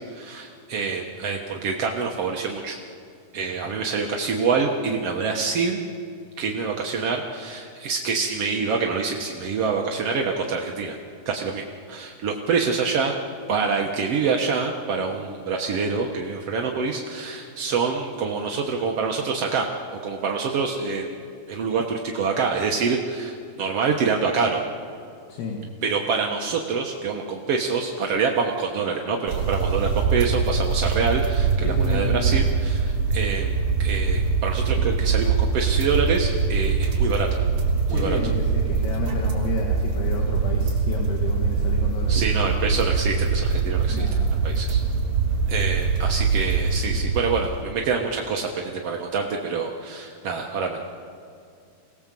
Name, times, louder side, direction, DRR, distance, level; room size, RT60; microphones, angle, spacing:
voice 1, 0.1-2.8 3.3-5.8 6.4-11.0 11.2-13.2 13.5-21.1 21.5-24.6 25.8-33.5 33.8-37.4 37.9-38.2 42.1-44.1 44.4-44.8 45.5-50.8, right 5 dB, 70° right, 1 dB, 1.4 m, -26 dB
voice 2, 25.3-25.6 31.6-32.4 34.8-34.9 37.9-42.2 43.9-44.4 46.9-47.0, left 4 dB, 75° left, 0 dB, 3.9 m, -31 dB
sound 1, 29.3-47.6, right 5 dB, 45° right, 4.4 m, -23 dB
26.5 x 19.0 x 7.6 m, 2.3 s
omnidirectional pair, 4.6 m